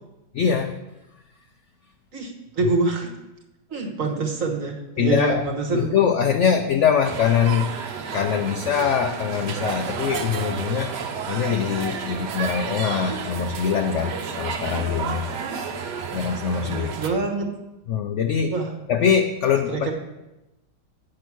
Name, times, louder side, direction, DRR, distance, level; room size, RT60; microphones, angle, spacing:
voice 1, 0.3-0.8 5.0-7.7 8.1-10.9 11.3-15.7 16.1-16.9 17.9-18.6 18.9-19.9, left 7 dB, 70° left, 6 dB, 0.6 m, -23 dB
voice 2, 2.1-3.1 3.7-6.0 16.6-17.5 18.5-18.7 19.7-19.9, right 3 dB, 55° right, 2 dB, 1.5 m, -25 dB
sound 1, 7.0-17.1, right 6 dB, 80° right, 1.4 m, -31 dB
8.8 x 5.7 x 6.0 m, 0.97 s
omnidirectional pair, 1.8 m